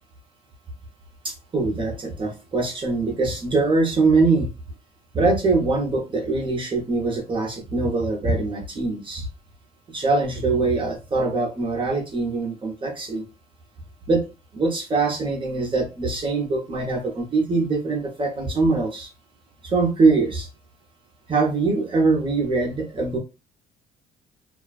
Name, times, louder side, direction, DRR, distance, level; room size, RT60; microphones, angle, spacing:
voice 1, 1.2-4.5 5.1-9.3 9.9-13.2 14.1-14.3 14.5-19.1 19.6-20.5 21.3-23.2, right 3 dB, 30° right, 0 dB, 0.8 m, -23 dB
2.4 x 2.2 x 2.3 m, 0.28 s
cardioid pair, 110°, 17 cm